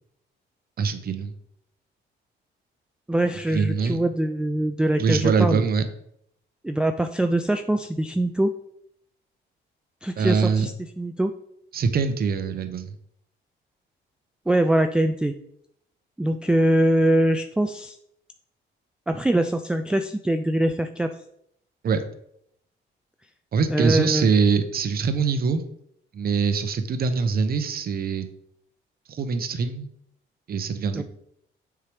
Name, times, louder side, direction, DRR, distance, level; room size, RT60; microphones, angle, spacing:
voice 1, 0.8-1.3 3.5-4.0 5.0-5.8 10.2-10.7 11.7-12.9 21.8-22.0 23.5-25.6 26.1-28.3 29.1-29.9 30.5-31.0, right 5 dB, 50° right, 9 dB, 0.7 m, -23 dB
voice 2, 3.1-5.6 6.6-8.5 10.0-11.3 14.5-15.3 16.2-18.0 19.1-21.1 23.7-24.3 31.0-31.1, right 1 dB, 5° right, 7 dB, 0.3 m, -23 dB
6.8 x 4.8 x 3.3 m, 0.73 s
cardioid pair, 90°, 20 cm